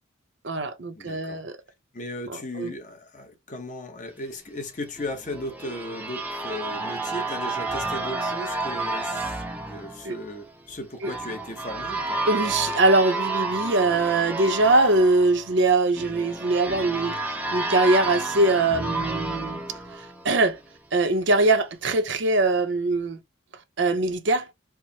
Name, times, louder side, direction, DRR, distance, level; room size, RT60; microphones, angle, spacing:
voice 1, 0.4-1.6 2.3-2.7 10.0-10.1 11.0-11.1 12.3-17.2 17.5-19.6 20.0-20.6 20.9-23.2 23.8-24.5, right 2 dB, 60° right, 0.6 m, -22 dB
voice 2, 1.0-1.4 1.9-9.3 9.6-12.2, left 1 dB, 35° left, 0.8 m, -36 dB
sound 1, 5.0-20.7, right 2 dB, 10° right, 0.5 m, -31 dB
4.6 x 2.1 x 2.7 m
head